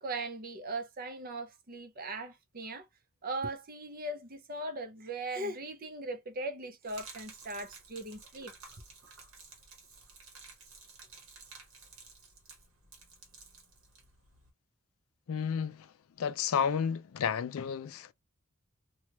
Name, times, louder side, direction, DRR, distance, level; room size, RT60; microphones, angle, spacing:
voice 1, 0.0-2.8 3.2-8.5, right 2 dB, 40° right, 0.6 m, -39 dB
Gurgling / Liquid, 6.9-14.5, right 4 dB, 60° right, 1.0 m, -53 dB
voice 2, 15.3-15.9 16.2-18.1, left 7 dB, 65° left, 0.3 m, -31 dB
3.0 x 2.3 x 2.8 m
head